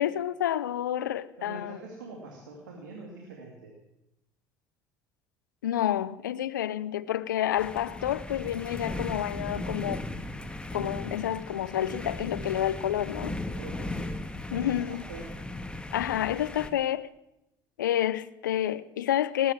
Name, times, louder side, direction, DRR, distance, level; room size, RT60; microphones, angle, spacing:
voice 1, 0.0-1.8 5.6-10.0 10.7-13.3 14.5-15.1 15.9-17.1 17.8-19.5, left 11 dB, 90° left, 0.5 m, -29 dB
voice 2, 1.4-3.7 13.2-14.1 14.5-15.3, right 2 dB, 90° right, 2.6 m, -44 dB
sound 1, 7.6-16.7, left 1 dB, 10° left, 1.7 m, -37 dB
19.0 x 9.5 x 7.3 m
hypercardioid pair, 65°, 10 cm